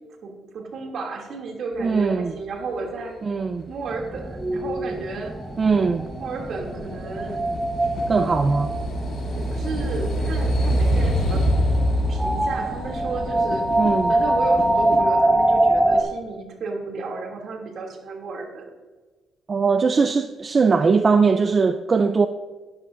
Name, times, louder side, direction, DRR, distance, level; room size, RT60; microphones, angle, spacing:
voice 1, 0.2-3.2 3.7-5.3 6.2-7.4 8.6-8.7 9.3-11.5 12.1-13.7 14.1-18.7, right 3 dB, 65° right, 2.7 m, -32 dB
voice 2, 1.8-2.3 3.2-3.6 5.6-6.0 8.1-8.7 13.8-14.2 19.5-22.3, right 4 dB, 40° right, 0.5 m, -20 dB
sound 1, 3.6-15.0, equal, 65° left, 3.1 m, -26 dB
sound 2, 3.9-16.0, right 1 dB, 15° right, 1.3 m, -24 dB
13.5 x 11.0 x 2.6 m
cardioid pair, 90°, 0 cm